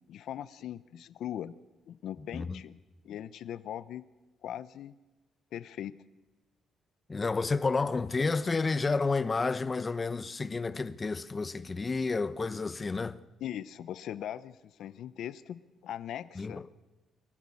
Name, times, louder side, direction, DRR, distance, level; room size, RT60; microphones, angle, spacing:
voice 1, 0.1-1.5 1.9-2.8 3.0-4.0 4.4-4.9 5.5-5.9 13.4-16.8, left 11 dB, 75° left, 0.8 m, -40 dB
voice 2, 7.1-13.2 16.4-16.6, left 4 dB, 30° left, 1.0 m, -30 dB
24.5 x 15.0 x 8.5 m
cardioid pair, 90°, 0 cm